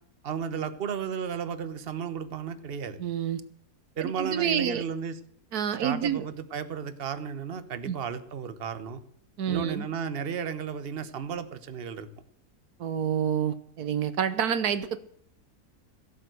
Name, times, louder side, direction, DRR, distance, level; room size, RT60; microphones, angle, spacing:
voice 1, 0.2-3.0 4.0-5.2 5.8-9.0 9.5-12.1, right 7 dB, 40° right, 11 dB, 1.2 m, -33 dB
voice 2, 3.0-3.4 4.0-4.8 5.5-6.3 7.9-8.0 9.4-9.9 12.8-15.0, right 8 dB, 75° right, 14 dB, 1.4 m, -28 dB
16.5 x 8.1 x 7.7 m, 0.68 s
omnidirectional pair, 1.6 m